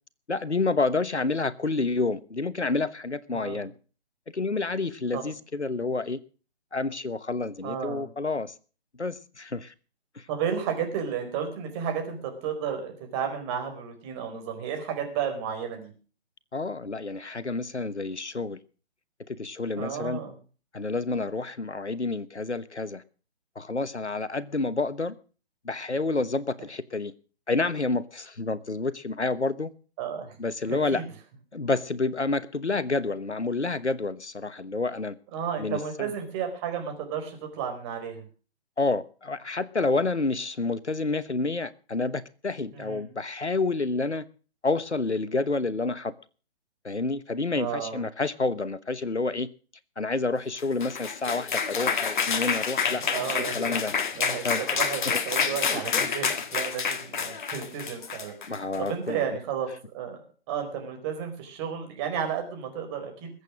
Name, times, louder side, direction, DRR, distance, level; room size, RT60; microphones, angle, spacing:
voice 1, 0.3-3.7 4.3-6.2 6.7-8.5 9.0-9.7 10.2-10.3 16.5-18.6 19.3-20.2 20.7-23.0 23.5-25.1 25.6-27.1 27.5-29.7 30.4-31.1 31.5-35.1 35.6-36.2 38.8-44.2 44.6-46.1 46.8-49.5 50.0-53.9 54.4-54.6 54.9-55.2 55.6-56.1 58.5-59.4 59.7-59.8, left 3 dB, 90° left, 1.3 m, -29 dB
voice 2, 3.3-3.6 5.1-5.3 7.6-8.1 10.3-15.9 19.8-20.3 30.0-30.3 30.7-31.0 35.3-38.2 42.7-43.1 47.5-48.0 52.9-53.6 54.1-59.7 59.9-60.2 60.5-63.3, right 7 dB, 25° right, 4.7 m, -32 dB
sound 1, 50.6-58.9, left 6 dB, 45° left, 2.0 m, -28 dB
21.5 x 8.4 x 6.4 m
figure-of-eight pair, 135°, 33 cm